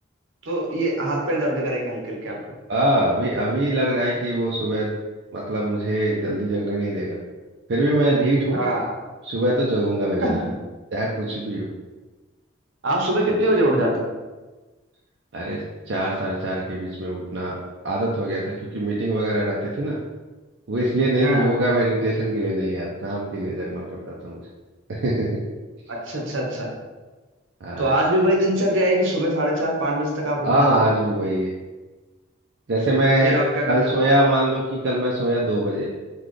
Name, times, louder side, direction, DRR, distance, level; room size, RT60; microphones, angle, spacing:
voice 1, 0.4-2.4 8.5-9.0 10.2-10.4 12.8-14.1 21.2-21.6 25.9-26.7 27.8-30.7 33.2-33.9, right 1 dB, 75° right, -1 dB, 0.8 m, -23 dB
voice 2, 2.7-4.9 5.3-7.2 7.7-8.6 9.2-10.4 10.9-11.7 15.3-15.6 15.9-17.6 17.8-20.0 20.7-24.4 24.9-25.4 27.6-27.9 30.4-31.5 32.7-33.4 33.7-35.9, right 1 dB, 60° right, -4 dB, 0.5 m, -23 dB
3.9 x 2.3 x 3.2 m, 1.2 s
head